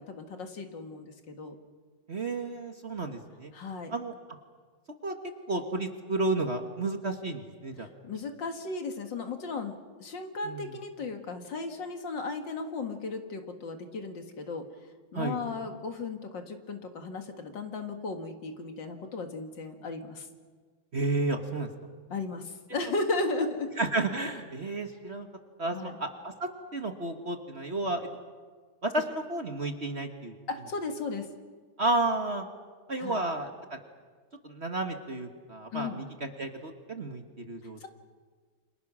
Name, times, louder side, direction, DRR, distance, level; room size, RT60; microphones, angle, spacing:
voice 1, 0.0-1.6 3.5-3.9 7.8-14.7 15.1-20.3 22.1-23.7 25.7-26.0 30.5-31.3 33.0-33.2 35.7-36.0 37.8-37.9, left 3 dB, 65° left, 6 dB, 2.5 m, -35 dB
voice 2, 2.1-3.5 3.9-4.1 5.0-5.1 5.5-7.9 10.4-10.7 15.1-15.4 20.9-21.7 23.8-25.3 25.6-28.1 28.8-30.4 31.8-32.4 32.9-33.8 34.4-37.9, right 2 dB, 35° right, 5 dB, 1.6 m, -32 dB
29.0 x 27.0 x 6.2 m, 1.5 s
omnidirectional pair, 2.2 m